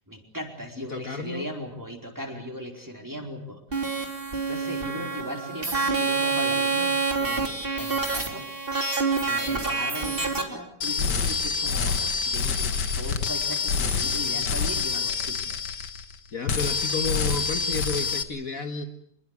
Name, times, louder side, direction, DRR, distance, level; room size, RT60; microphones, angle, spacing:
voice 1, 0.1-3.6 3.9-4.0 4.5-8.5 9.2-15.6, equal, 10° right, 3 dB, 4.6 m, -38 dB
voice 2, 0.8-1.5 11.1-11.3 16.3-18.9, left 4 dB, 55° left, 7 dB, 1.9 m, -31 dB
sound 1, 3.7-10.4, right 4 dB, 30° right, 3.6 m, -27 dB
sound 2, 10.8-16.2 16.5-18.2, left 5 dB, 85° left, 2.2 m, -27 dB
26.0 x 22.0 x 8.4 m, 0.68 s
omnidirectional pair, 1.8 m